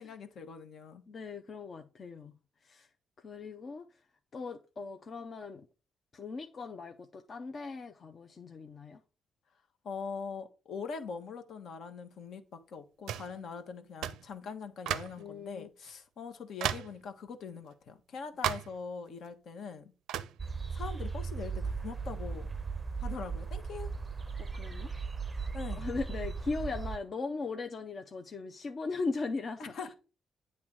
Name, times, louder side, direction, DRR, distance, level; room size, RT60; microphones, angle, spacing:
voice 1, 0.0-1.0 9.8-19.9 20.7-22.5 23.0-23.9 25.5-25.9 29.6-29.9, left 5 dB, 65° left, 1.2 m, -42 dB
voice 2, 1.1-2.4 2.6-2.9 3.2-3.8 4.3-5.7 6.1-9.0 15.2-15.7 24.4-25.0 25.4-25.5 25.8-29.9, left 4 dB, 45° left, 0.6 m, -39 dB
sound 1, 13.1-13.4 14.0-14.3 14.9-15.2 15.8-15.9 16.6-17.0 18.4-18.8 20.1-20.4, right 11 dB, 85° right, 0.4 m, -34 dB
sound 2, 20.4-27.0, right 5 dB, 25° right, 0.5 m, -37 dB
8.5 x 3.2 x 6.1 m
cardioid pair, 90°, 0 cm